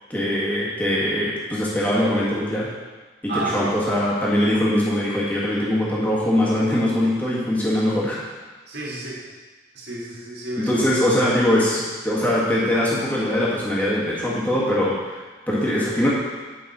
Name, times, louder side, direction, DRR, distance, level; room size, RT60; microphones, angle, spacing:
voice 1, 0.1-2.7 3.2-8.2 10.6-16.1, left 1 dB, 10° left, -7 dB, 1.6 m, -22 dB
voice 2, 3.3-3.7 8.7-9.3 9.7-10.8, right 2 dB, 65° right, -5 dB, 2.0 m, -31 dB
9.1 x 5.3 x 4.2 m, 1.3 s
head